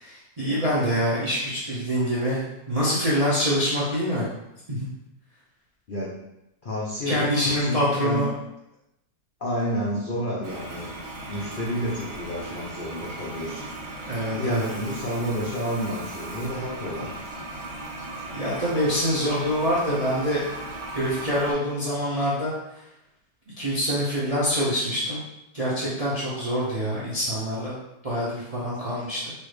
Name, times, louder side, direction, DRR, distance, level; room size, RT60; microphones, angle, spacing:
voice 1, 0.1-2.4 2.7-4.3 4.7-4.8 7.1-8.3 14.0-14.7 18.3-20.4 20.9-22.5 23.6-25.2 25.5-27.8 28.0-29.3, equal, 45° right, -8 dB, 0.5 m, -25 dB
voice 2, 6.6-8.2 9.4-10.9 11.3-13.7 14.4-17.1, equal, 65° left, -6 dB, 0.5 m, -30 dB
Toilet flush, 10.4-21.5, right 2 dB, 65° right, 1.6 m, -37 dB
4.2 x 2.6 x 3.2 m, 0.88 s
omnidirectional pair, 1.9 m